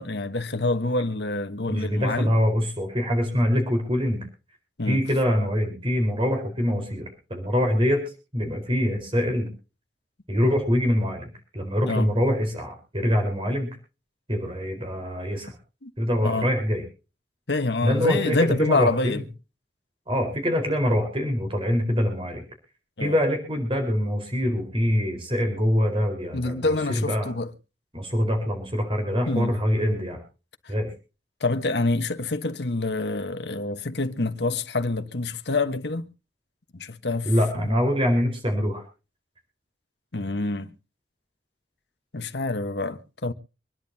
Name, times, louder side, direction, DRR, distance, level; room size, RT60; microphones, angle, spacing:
voice 1, 0.0-2.3 4.8-5.0 11.8-12.1 15.8-15.9 16.2-16.5 17.5-19.2 23.0-23.2 26.3-27.5 29.3-29.5 30.6-30.7 31.4-36.0 36.7-37.7 40.1-40.7 42.1-43.3, left 2 dB, 70° left, 1.3 m, -26 dB
voice 2, 1.7-4.2 4.8-8.0 8.3-9.5 10.3-13.7 14.3-15.6 16.0-16.8 17.8-19.2 20.1-22.4 23.0-27.3 27.9-30.2 30.7-30.9 37.2-38.8, equal, 30° right, 4.5 m, -24 dB
26.0 x 11.0 x 2.8 m
head